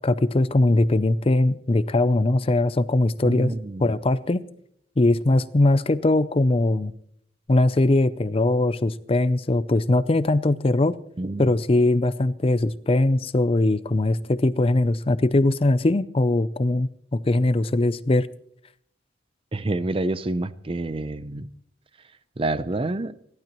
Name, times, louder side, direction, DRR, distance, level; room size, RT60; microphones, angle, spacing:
voice 1, 0.0-3.5 3.8-4.4 5.0-6.9 7.5-11.0 11.4-18.3, left 2 dB, 30° left, 0.5 m, -21 dB
voice 2, 3.2-3.9 11.2-11.5 19.5-21.5 22.4-23.1, right 2 dB, 30° right, 0.6 m, -28 dB
29.5 x 12.0 x 3.0 m
head